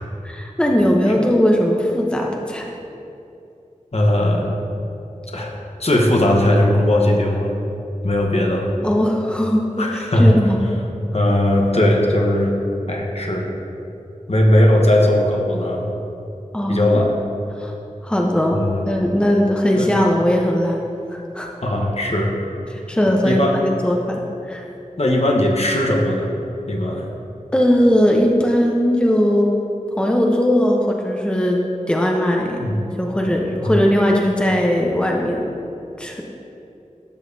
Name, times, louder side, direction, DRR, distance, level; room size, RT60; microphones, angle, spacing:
voice 1, 0.2-2.7 8.8-9.8 10.2-10.6 16.5-17.0 17.6-17.7 18.0-20.8 21.1-21.5 22.7-24.7 27.5-29.5 30.0-31.6 31.9-32.6 33.0-35.4 36.0-36.2, equal, 5° left, 0 dB, 0.8 m, -19 dB
voice 2, 3.9-4.5 5.3-5.5 5.8-7.5 8.0-8.7 9.8-10.3 11.1-12.6 12.9-13.5 14.3-15.9 16.7-17.1 18.5-18.9 19.7-19.9 21.6-22.3 23.2-23.5 25.0-26.3 26.7-27.0 32.6-32.8 33.6-33.7, left 1 dB, 50° left, 0 dB, 1.1 m, -18 dB
12.0 x 6.5 x 2.7 m, 2.7 s
wide cardioid pair, 45°, 13 cm